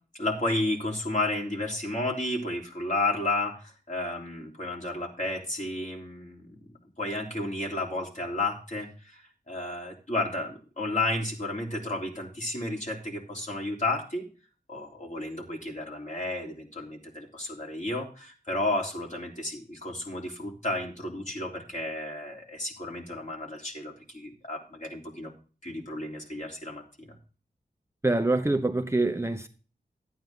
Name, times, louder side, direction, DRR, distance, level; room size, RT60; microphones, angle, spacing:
voice 1, 0.2-6.6 7.0-14.3 14.7-25.3 25.6-27.2, left 2 dB, 45° left, 3.4 m, -32 dB
voice 2, 28.0-29.5, right 2 dB, 15° right, 0.8 m, -25 dB
11.5 x 9.2 x 3.7 m
wide cardioid pair, 90°, 17 cm